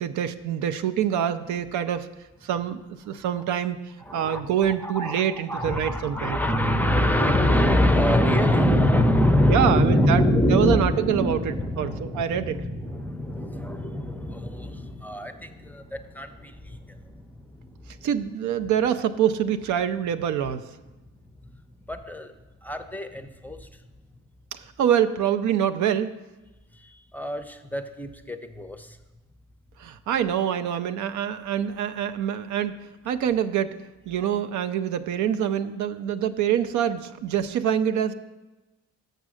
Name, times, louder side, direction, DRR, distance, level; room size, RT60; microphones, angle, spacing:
voice 1, 0.0-2.1 2.4-3.8 4.1-6.4 9.5-10.2 10.5-12.6 18.0-20.6 24.5-26.1 29.8-32.8 33.0-33.7 34.1-38.1, right 9 dB, 75° right, 11 dB, 0.5 m, -25 dB
voice 2, 4.1-18.0 21.5-21.6 21.9-22.3 22.6-23.7 26.8-29.0, equal, 5° left, 7 dB, 0.5 m, -24 dB
6.6 x 6.1 x 6.2 m, 1.1 s
cardioid pair, 90°, 30 cm